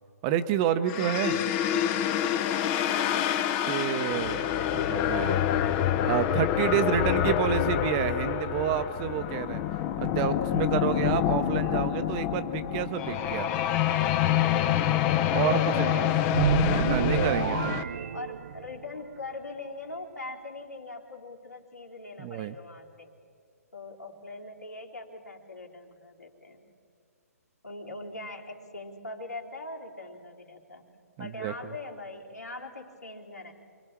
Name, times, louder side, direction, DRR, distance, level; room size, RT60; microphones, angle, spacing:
voice 1, 0.2-1.5 3.7-4.4 4.7-5.4 6.0-9.6 10.0-13.5 15.3-16.1 16.7-17.8 22.2-22.6 31.2-31.5, right 10 dB, 25° right, 11 dB, 0.9 m, -29 dB
sound 1, 0.9-17.8, left 11 dB, 25° left, 0.8 m, -27 dB
voice 2, 2.6-3.1 15.4-17.4 18.1-23.1 23.7-26.7 27.6-30.9 31.2-33.5, left 3 dB, 90° left, -1 dB, 3.6 m, -41 dB
sound 2, 16.3-18.9, right 9 dB, 50° right, 0.5 m, -28 dB
28.0 x 23.0 x 4.6 m, 2.3 s
figure-of-eight pair, 135°, 9 cm